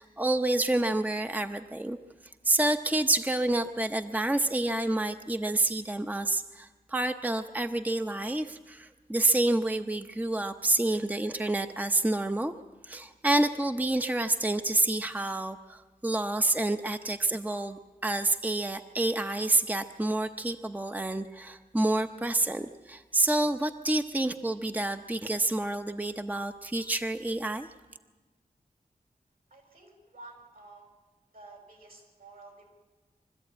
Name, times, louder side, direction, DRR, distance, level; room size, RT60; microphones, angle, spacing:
voice 1, 0.0-2.0 2.4-12.5 12.8-27.7, right 2 dB, 10° right, 7 dB, 0.7 m, -28 dB
voice 2, 29.5-30.8 31.3-32.7, right 2 dB, 70° right, 2 dB, 5.9 m, -51 dB
23.5 x 13.5 x 8.7 m, 1.3 s
wide cardioid pair, 65°, 15 cm